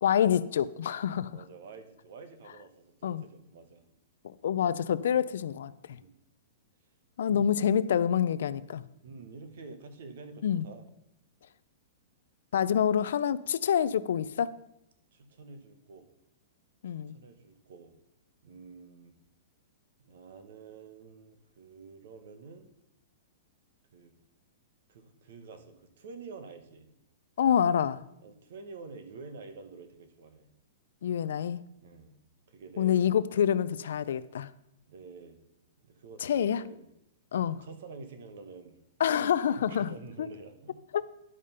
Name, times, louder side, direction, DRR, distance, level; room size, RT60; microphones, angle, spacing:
voice 1, 0.0-1.3 3.0-3.2 4.4-6.0 7.2-8.8 10.4-10.7 12.5-14.6 16.8-17.2 27.4-28.0 31.0-31.6 32.8-34.5 36.2-36.6 37.3-37.6 39.0-39.9 40.2-40.3 40.9-41.1, left 9 dB, 70° left, 0.4 m, -27 dB
voice 2, 1.1-3.9 5.9-6.2 7.3-7.5 9.0-10.8 15.1-16.1 17.1-17.9 18.4-19.1 20.0-22.7 23.9-24.1 24.9-26.9 28.2-30.5 31.8-32.2 32.5-33.0 34.9-35.4 35.8-36.9 37.3-38.8 39.5-40.8, right 4 dB, 60° right, 1.2 m, -48 dB
11.0 x 5.0 x 5.5 m
hypercardioid pair, 170°, 0 cm